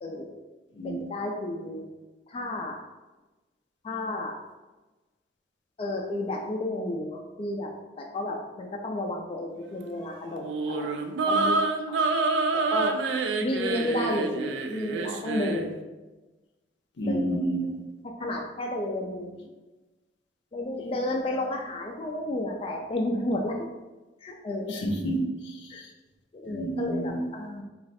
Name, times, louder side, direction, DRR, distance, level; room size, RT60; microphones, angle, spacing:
voice 1, 0.0-0.3 0.8-1.8 2.3-2.8 3.8-4.4 5.8-7.7 8.0-11.6 12.5-13.0 13.4-15.8 17.0-17.3 17.6-17.7 18.2-19.3 20.5-23.6 24.2-24.9 25.7-25.8 26.3-27.6, left 1 dB, 30° left, 1 dB, 0.3 m, -32 dB
sound 1, 10.4-15.7, right 3 dB, 90° right, 0.3 m, -27 dB
voice 2, 17.0-17.8 24.7-25.6 26.5-27.2, right 1 dB, 75° left, 2 dB, 0.6 m, -29 dB
3.1 x 2.4 x 4.0 m, 1.2 s
head